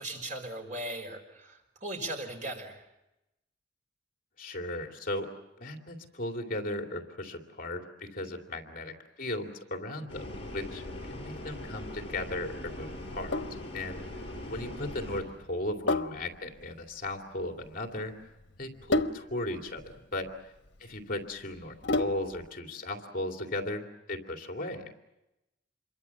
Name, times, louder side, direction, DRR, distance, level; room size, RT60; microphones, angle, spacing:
voice 1, 0.0-2.9 14.4-14.7, right 1 dB, 40° right, 4 dB, 5.1 m, -38 dB
voice 2, 4.4-5.3 5.6-10.8 11.1-14.0 14.5-18.1 18.6-20.3 20.8-24.9, left 1 dB, 50° left, 3 dB, 2.7 m, -36 dB
sound 1, 10.1-15.2, left 1 dB, 30° left, 7.5 m, -41 dB
Sink (filling or washing), 13.0-22.5, left 2 dB, 80° left, 1.1 m, -34 dB
27.5 x 23.0 x 7.2 m, 0.91 s
head